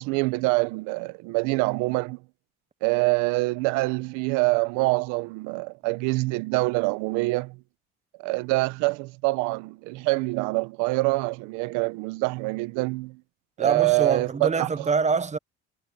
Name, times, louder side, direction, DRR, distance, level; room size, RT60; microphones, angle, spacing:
voice 1, 0.0-2.2 2.8-7.6 8.2-13.2 13.6-14.9, right 25 dB, 80° right, 1.0 m, -25 dB
voice 2, 13.6-15.4, right 5 dB, 25° right, 1.0 m, -25 dB
supercardioid pair, 75°, 29 cm